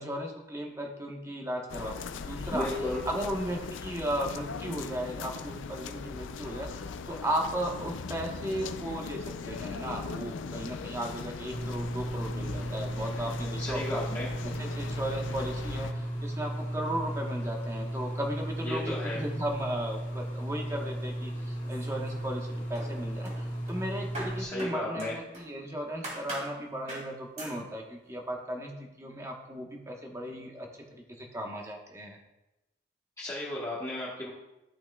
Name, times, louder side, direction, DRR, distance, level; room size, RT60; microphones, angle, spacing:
voice 1, 0.0-2.7 3.1-14.0 14.6-32.2, right 1 dB, 15° right, 1 dB, 1.1 m, -36 dB
sound 1, 1.7-15.9, left 5 dB, 75° left, 0.4 m, -40 dB
voice 2, 2.5-3.0 13.6-14.3 18.6-19.2 24.4-25.1 33.2-34.3, left 1 dB, 15° left, -7 dB, 1.3 m, -34 dB
sound 2, 11.5-24.4, right 1 dB, 40° left, 2.0 m, -35 dB
sound 3, 21.6-22.4 22.7-25.5 26.0-26.5 26.9-27.1 27.4-27.6, right 1 dB, 40° right, 2.6 m, -42 dB
13.0 x 5.8 x 2.3 m, 0.98 s
head